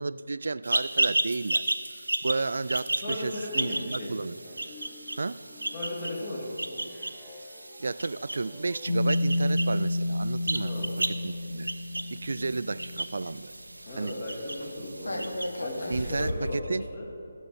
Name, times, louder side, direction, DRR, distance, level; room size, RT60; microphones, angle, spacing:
voice 1, 0.0-1.6 2.2-4.4 5.2-5.4 7.8-10.7 11.1-11.7 12.1-13.5 13.9-14.1 15.9-16.8, right 3 dB, 60° right, 16 dB, 0.3 m, -32 dB
sound 1, 0.6-16.3, right 2 dB, 80° right, 0.8 m, -34 dB
voice 2, 3.0-4.3 5.7-6.9 10.6-11.0 13.9-17.0, left 1 dB, 40° left, -3 dB, 2.8 m, -36 dB
sound 2, 4.4-9.8, left 2 dB, 5° left, 0.8 m, -52 dB
sound 3, 8.9-13.5 13.9-14.0 14.3-16.5, left 1 dB, 75° left, 0.9 m, -31 dB
14.0 x 7.3 x 4.9 m, 2.6 s
figure-of-eight pair, 150°, 0 cm